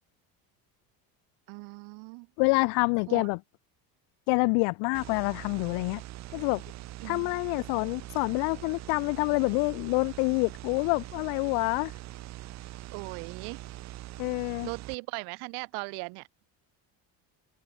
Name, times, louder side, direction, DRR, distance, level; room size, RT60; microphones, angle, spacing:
voice 1, 1.5-2.3 3.1-3.3 7.0-7.4 12.9-13.6 14.6-16.3, right 33 dB, 85° right, 2.4 m, -38 dB
voice 2, 2.4-3.4 4.3-6.0 6.3-6.6 7.0-11.9 14.2-14.7, left 36 dB, 85° left, 0.7 m, -27 dB
sound 1, 4.9-15.0, right 15 dB, 45° right, 2.5 m, -43 dB
open air
cardioid pair, 180°, 39 cm